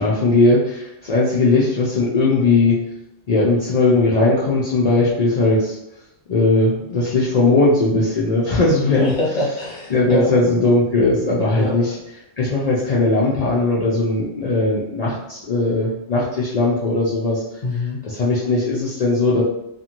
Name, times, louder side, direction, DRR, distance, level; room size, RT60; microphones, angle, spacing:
voice 1, 0.0-2.8 3.3-5.8 6.3-9.1 9.9-12.0 12.4-17.4 18.0-19.4, left 2 dB, 85° left, -6 dB, 0.3 m, -18 dB
voice 2, 8.9-10.3 11.5-11.9 17.6-18.0, left 1 dB, 30° left, -4 dB, 0.7 m, -24 dB
2.6 x 2.5 x 2.9 m, 0.84 s
omnidirectional pair, 1.4 m